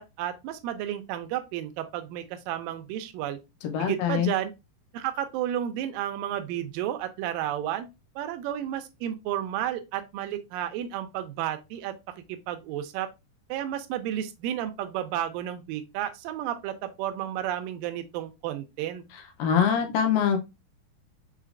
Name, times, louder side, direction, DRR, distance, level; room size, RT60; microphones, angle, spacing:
voice 1, 0.0-3.4 3.8-4.5 4.9-7.9 8.2-11.9 12.3-13.1 13.5-19.0, right 11 dB, 85° right, 2.2 m, -32 dB
voice 2, 3.6-4.3 19.4-20.4, left 7 dB, 75° left, 2.3 m, -24 dB
6.5 x 3.2 x 2.5 m
omnidirectional pair, 4.1 m